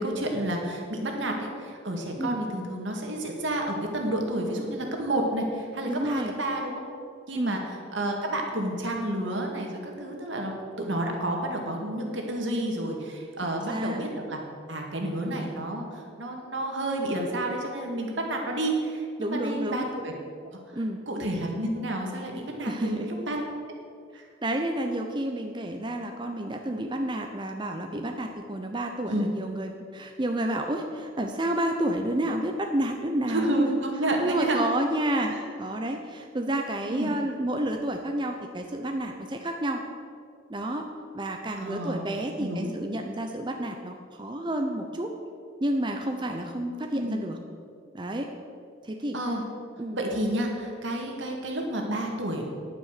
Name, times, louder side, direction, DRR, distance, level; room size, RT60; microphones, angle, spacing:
voice 1, 0.0-6.8 7.3-10.5 10.8-14.4 14.7-20.1 21.1-23.4 24.1-24.2 29.1-29.3 33.3-34.6 35.3-35.4 36.9-37.1 41.6-42.1 42.4-42.7 46.9-47.2 49.1-49.4 49.9-52.5, right 1 dB, 75° right, 1 dB, 2.1 m, -30 dB
voice 2, 5.9-6.3 7.3-7.6 13.4-14.0 15.3-15.4 19.2-19.8 20.7-21.0 22.7-23.1 24.4-33.7 34.2-39.8 40.5-45.1 45.6-47.4 47.9-48.3 48.8-49.2 49.8-50.0, right 1 dB, 25° right, 4 dB, 0.6 m, -30 dB
10.5 x 9.3 x 6.7 m, 2.3 s
head